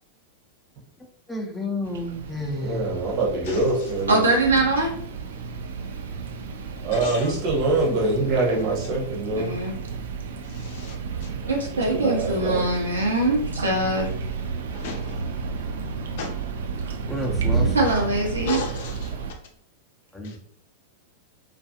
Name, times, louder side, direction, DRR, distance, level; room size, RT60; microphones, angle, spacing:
voice 1, 1.3-3.0 17.1-17.8 20.1-20.4, left 1 dB, 10° left, 0 dB, 0.6 m, -30 dB
sound 1, 1.8-19.3, right 5 dB, 70° right, 0.3 m, -32 dB
voice 2, 2.6-4.2 6.8-9.6 11.7-12.6, right 2 dB, 45° right, -1 dB, 0.9 m, -24 dB
voice 3, 4.1-4.9 9.3-9.7 11.4-14.1 17.7-18.6, right 2 dB, 85° right, -1 dB, 0.8 m, -22 dB
voice 4, 6.9-7.3 10.4-11.3 14.7-15.2 16.2-16.3 18.4-19.3 20.2-20.4, left 4 dB, 60° left, 2 dB, 0.6 m, -34 dB
2.4 x 2.2 x 2.7 m, 0.62 s
figure-of-eight pair, 95°, 0 cm